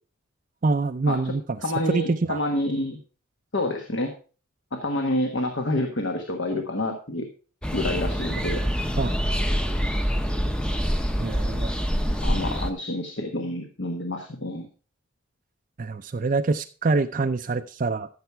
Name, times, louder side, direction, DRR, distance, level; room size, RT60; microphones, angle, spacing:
voice 1, 0.6-1.4 1.9-2.4 9.0-9.1 11.2-11.7 15.8-18.1, right 3 dB, 40° right, 7 dB, 0.4 m, -25 dB
voice 2, 1.6-3.0 3.5-4.1 4.7-7.3 7.7-8.6 12.2-14.7, left 1 dB, 60° left, 4 dB, 1.4 m, -28 dB
sound 1, 7.6-12.7, equal, 5° left, 0.7 m, -25 dB
13.5 x 6.9 x 4.6 m, 0.37 s
head